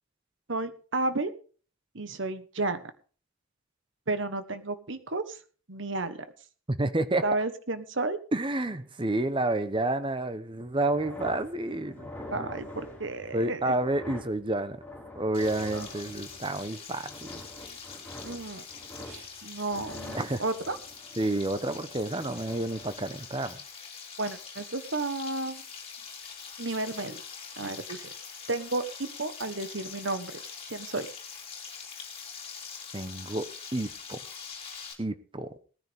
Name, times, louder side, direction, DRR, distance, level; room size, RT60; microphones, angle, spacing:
voice 1, 0.5-1.3 1.9-2.9 4.1-5.4 5.7-6.3 7.2-8.2 12.3-13.7 15.7-15.9 18.2-18.7 19.0-20.8 24.2-25.6 26.6-27.2 27.6-28.1 28.5-30.3 30.7-31.1, right 2 dB, 65° right, 10 dB, 1.3 m, -32 dB
voice 2, 6.7-7.2 8.3-12.5 13.3-14.8 15.2-17.4 20.1-20.4 21.2-23.6 32.9-34.2 35.0-35.5, right 2 dB, 25° right, 11 dB, 0.9 m, -30 dB
sound 1, 10.7-16.8 17.1-19.4 19.7-23.0, left 1 dB, 10° left, 4.7 m, -45 dB
Frying (food), 15.3-34.9, left 6 dB, 30° left, 3.1 m, -44 dB
18.5 x 10.0 x 3.6 m, 0.40 s
head